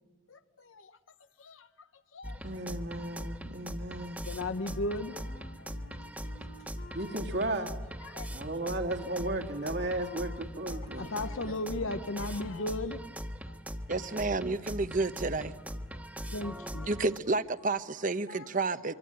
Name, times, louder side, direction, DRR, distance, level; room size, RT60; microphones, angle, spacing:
voice 1, 0.3-0.9 1.4-1.7 2.1-2.4 4.3-5.2 5.6-5.7 8.0-8.3 10.7-13.0 13.5-13.6 15.9-16.9 18.3-18.4, left 2 dB, 85° left, 11 dB, 0.9 m, -36 dB
sound 1, 2.2-17.2, equal, 10° right, 1.3 m, -41 dB
voice 2, 2.4-4.2 6.9-7.7 8.3-11.1, right 1 dB, 60° right, 3 dB, 2.4 m, -34 dB
Wind instrument woodwind instrument, 4.5-13.1, left 2 dB, 60° left, 2.4 m, -53 dB
voice 3, 13.9-15.5 16.9-18.9, right 3 dB, 40° right, 12 dB, 1.0 m, -30 dB
25.0 x 24.5 x 9.0 m, 1.3 s
head